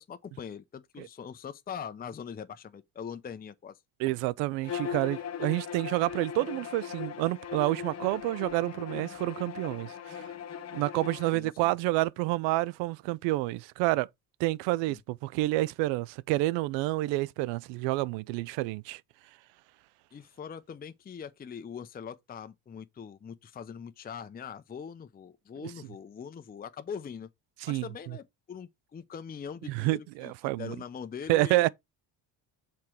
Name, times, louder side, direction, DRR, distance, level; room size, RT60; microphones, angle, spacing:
voice 1, 0.0-3.8 11.3-11.7 14.9-15.0 20.1-27.3 27.7-31.7, left 7 dB, 20° left, 0.6 m, -42 dB
voice 2, 4.0-10.2 10.7-14.1 14.4-19.0 25.6-25.7 27.6-27.8 29.7-30.8 31.3-31.7, right 19 dB, 90° right, 0.5 m, -29 dB
Bowed string instrument, 4.6-11.4, left 8 dB, 35° left, 1.0 m, -39 dB
6.0 x 4.4 x 4.7 m
cardioid pair, 95°, 43 cm